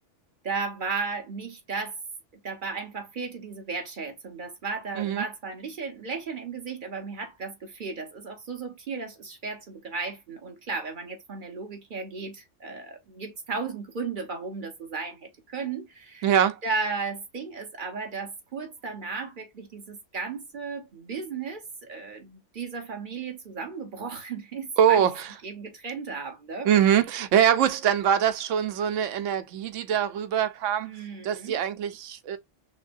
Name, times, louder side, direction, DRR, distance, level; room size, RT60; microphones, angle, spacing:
voice 1, 0.4-2.0 2.4-16.3 16.6-25.1 25.4-26.7 30.9-31.6, right 4 dB, 45° right, 1.1 m, -35 dB
voice 2, 5.0-5.3 16.2-16.6 24.8-25.3 26.7-30.9 31.2-32.4, right 9 dB, 85° right, 1.0 m, -23 dB
6.0 x 2.1 x 2.5 m
omnidirectional pair, 1.2 m